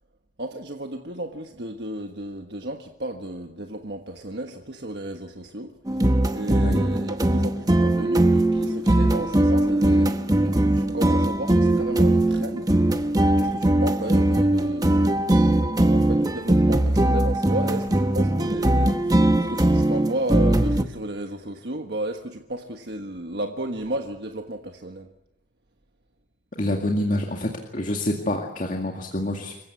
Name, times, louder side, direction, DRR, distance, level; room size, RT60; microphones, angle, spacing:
voice 1, 0.4-12.7 13.4-25.1, right 1 dB, 60° right, 4 dB, 1.4 m, -33 dB
sound 1, 5.9-20.8, right 1 dB, 20° right, 0.9 m, -20 dB
voice 2, 26.6-29.5, left 1 dB, 45° left, 1 dB, 2.1 m, -27 dB
27.0 x 16.0 x 8.4 m, 0.89 s
head